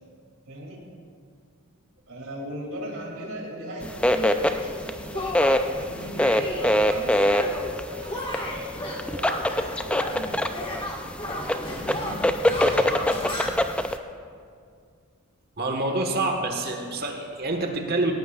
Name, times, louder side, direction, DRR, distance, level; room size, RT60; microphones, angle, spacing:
voice 1, 0.5-0.8 2.1-5.3 5.7-7.1 7.9-11.1 11.8-12.2 12.6-13.6, equal, 70° right, -2 dB, 2.7 m, -38 dB
sound 1, 3.8-14.0, left 1 dB, 5° left, 0.4 m, -24 dB
Shatter, 4.4-4.6 5.1-5.7 6.2-6.7 7.1-7.7 8.1-10.3 10.5-13.5, left 1 dB, 25° left, 1.5 m, -33 dB
voice 2, 15.6-18.1, right 2 dB, 45° right, 3 dB, 1.4 m, -27 dB
18.0 x 17.5 x 2.4 m, 2.2 s
head